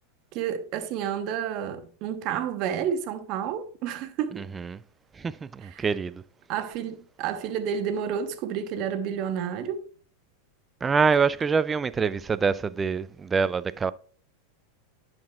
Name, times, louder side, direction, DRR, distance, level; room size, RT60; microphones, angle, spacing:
voice 1, 0.3-4.5 5.6-5.9 6.5-9.8, right 8 dB, 45° right, 0.9 m, -30 dB
voice 2, 5.2-6.2 10.8-13.9, right 5 dB, 20° right, 0.4 m, -25 dB
10.5 x 6.0 x 2.3 m
figure-of-eight pair, 90°, 0 cm